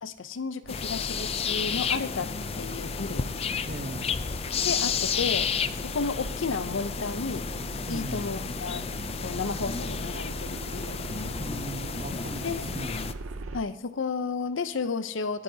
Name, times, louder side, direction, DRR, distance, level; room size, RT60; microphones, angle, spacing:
voice 1, 0.0-2.3 2.6-3.3 4.6-5.5 5.8-7.4 7.9-8.9 9.2-11.0 12.4-12.7 13.5-15.4, left 4 dB, 70° left, 12 dB, 0.6 m, -32 dB
sound 1, 0.6-13.6, right 2 dB, 80° right, 0.6 m, -40 dB
sound 2, 0.7-13.1, left 6 dB, 30° left, 0.4 m, -32 dB
voice 2, 3.6-4.2 7.9-8.2 11.4-13.0, right 1 dB, 45° right, 7 dB, 1.0 m, -38 dB
26.0 x 8.8 x 2.8 m, 0.95 s
head